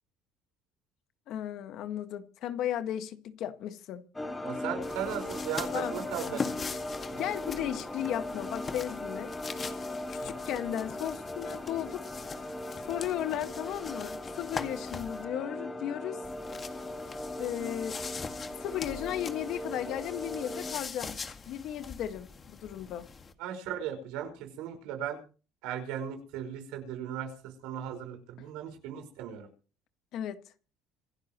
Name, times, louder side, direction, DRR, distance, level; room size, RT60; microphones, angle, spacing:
voice 1, 1.3-4.0 5.7-5.9 7.2-9.3 10.1-12.1 12.8-16.2 17.4-18.0 18.6-21.2 21.5-23.1 30.1-30.4, left 11 dB, 65° left, 1.7 m, -35 dB
sound 1, 4.1-20.7, left 1 dB, 15° left, 4.4 m, -39 dB
voice 2, 4.4-6.5 7.1-7.2 10.2-10.3 23.4-25.2 25.6-29.5, right 9 dB, 85° right, 5.2 m, -37 dB
sound 2, 4.8-15.2 16.2-23.3, left 5 dB, 30° left, 1.9 m, -42 dB
26.5 x 12.0 x 3.1 m
cardioid pair, 120°, 0 cm